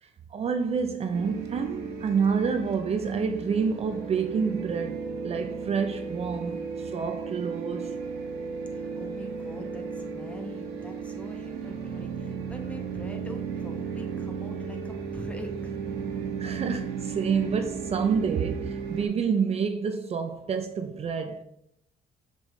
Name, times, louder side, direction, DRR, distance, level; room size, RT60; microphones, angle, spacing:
voice 1, 0.0-8.0 16.4-21.4, right 6 dB, 35° right, 0.5 m, -28 dB
sound 1, 1.1-19.1, right 6 dB, 80° right, 1.4 m, -35 dB
voice 2, 8.7-15.8, equal, 5° left, 1.0 m, -44 dB
7.2 x 5.2 x 3.1 m
cardioid pair, 110°, 17 cm